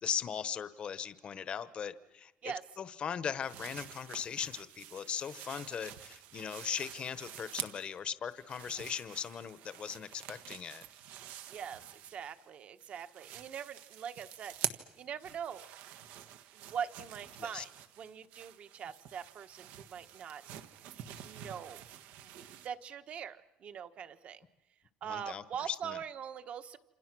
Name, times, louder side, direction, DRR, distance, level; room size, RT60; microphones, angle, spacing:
voice 1, 0.0-10.9 17.4-17.6 25.0-26.0, left 8 dB, 40° left, 13 dB, 1.0 m, -39 dB
sound 1, 3.4-8.0 8.3-12.5 12.8-22.7, right 11 dB, 90° right, 1.5 m, -47 dB
voice 2, 11.5-14.5 15.0-15.7 16.5-17.7 18.0-20.4 21.2-21.8 22.6-24.4 25.0-26.8, right 8 dB, 45° right, 10 dB, 1.2 m, -42 dB
28.0 x 27.5 x 6.1 m, 1.0 s
cardioid pair, 150°, 3 cm